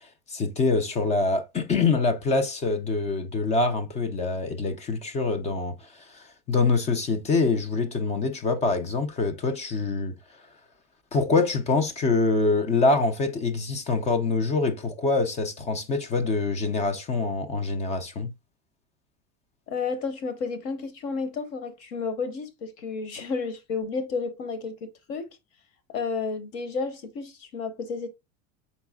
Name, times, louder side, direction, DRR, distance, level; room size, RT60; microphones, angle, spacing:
voice 1, 0.3-5.7 6.1-10.1 11.1-18.3, left 3 dB, 25° left, 0.5 m, -25 dB
voice 2, 19.7-25.3 25.9-28.1, left 4 dB, 50° left, 1.0 m, -31 dB
5.2 x 4.0 x 2.2 m
supercardioid pair, 150°, 30 cm